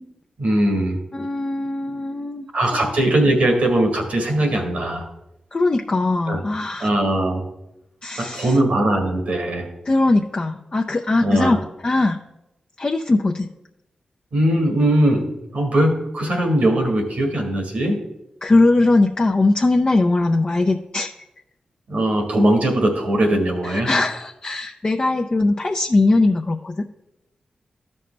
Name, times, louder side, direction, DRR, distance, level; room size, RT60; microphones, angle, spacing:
voice 1, 0.4-1.0 2.5-5.1 6.3-6.4 6.8-7.4 8.2-9.7 11.2-11.6 14.3-15.3 15.5-18.0 21.9-23.9, right 1 dB, 75° right, 2 dB, 1.6 m, -20 dB
voice 2, 1.1-2.5 2.8-2.9 5.5-6.9 8.0-8.6 9.9-11.6 11.8-12.2 12.8-13.5 18.4-21.1 23.6-26.9, left 2 dB, 40° left, 3 dB, 0.6 m, -20 dB
13.0 x 5.4 x 3.3 m, 0.90 s
cardioid pair, 45°, 2 cm